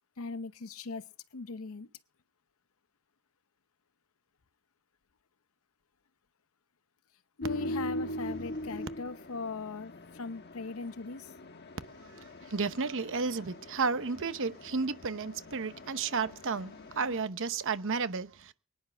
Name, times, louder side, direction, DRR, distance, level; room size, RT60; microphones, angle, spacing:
voice 1, 0.2-1.0 1.3-1.9 7.4-11.3, left 4 dB, 70° left, 0.8 m, -39 dB
sound 1, 7.4-17.2, left 1 dB, 50° left, 1.3 m, -41 dB
voice 2, 12.0-18.5, right 4 dB, 60° right, 0.9 m, -33 dB
24.0 x 10.0 x 3.4 m
head